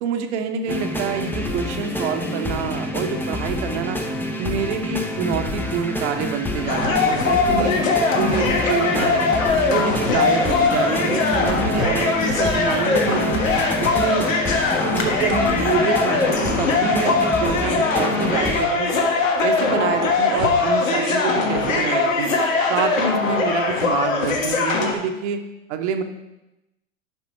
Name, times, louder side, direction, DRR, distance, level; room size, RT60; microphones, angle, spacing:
voice 1, 0.0-4.0 4.4-7.7 8.1-9.3 9.6-13.4 13.8-14.2 14.9-18.9 19.4-22.3 22.7-25.4 25.7-26.0, right 6 dB, 60° right, 6 dB, 1.2 m, -26 dB
sound 1, 0.7-18.7, left 1 dB, 5° left, 0.8 m, -27 dB
sound 2, 6.7-24.9, left 4 dB, 80° left, 1.6 m, -21 dB
11.0 x 5.5 x 4.5 m, 0.94 s
hypercardioid pair, 105°, 39 cm